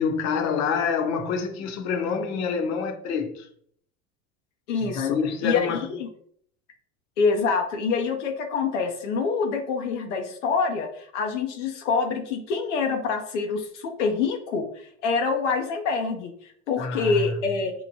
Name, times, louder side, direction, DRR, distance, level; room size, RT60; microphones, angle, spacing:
voice 1, 0.0-3.5 4.8-5.9 16.8-17.4, left 6 dB, 50° left, 0.7 m, -27 dB
voice 2, 4.7-5.2 5.4-6.1 7.2-17.7, left 4 dB, 85° left, 0.6 m, -26 dB
4.5 x 2.1 x 2.6 m
hypercardioid pair, 95°, 35 cm